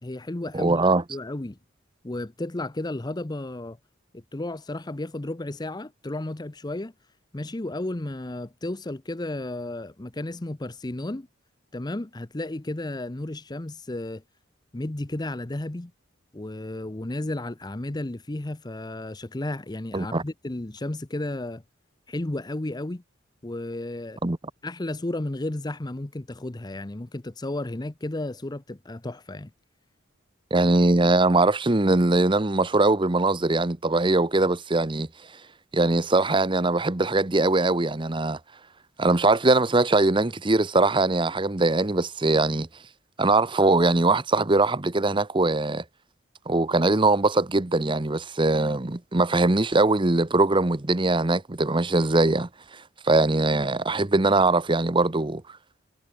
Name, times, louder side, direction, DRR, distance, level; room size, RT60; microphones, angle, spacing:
voice 1, 0.0-0.8 1.1-1.6 2.0-3.8 4.1-6.9 7.3-11.3 11.7-14.2 14.7-15.9 16.3-21.6 22.1-23.0 23.4-24.2 24.6-29.5, left 1 dB, 20° left, 0.7 m, -33 dB
voice 2, 0.5-1.0 19.9-20.2 24.2-24.4 30.5-35.1 35.7-38.4 39.0-42.7 43.2-45.8 46.5-55.4, right 2 dB, 25° right, 0.9 m, -21 dB
head